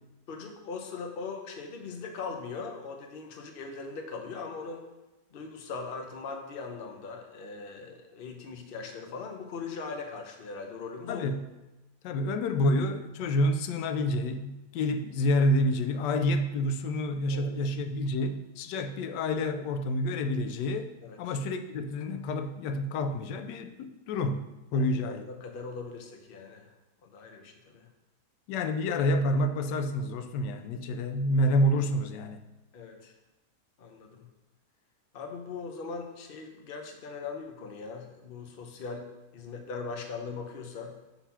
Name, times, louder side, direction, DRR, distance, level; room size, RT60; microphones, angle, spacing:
voice 1, 0.3-4.9 5.3-11.3 17.3-17.7 21.0-21.2 24.7-26.7 27.0-27.9 32.7-33.1 33.8-34.3 35.1-39.1 39.3-40.9, left 4 dB, 45° left, 3 dB, 0.8 m, -40 dB
voice 2, 11.1-11.5 12.0-20.9 21.2-25.2 28.5-32.4, left 1 dB, 90° left, 9 dB, 1.2 m, -28 dB
6.0 x 4.0 x 5.6 m, 1.0 s
omnidirectional pair, 1.8 m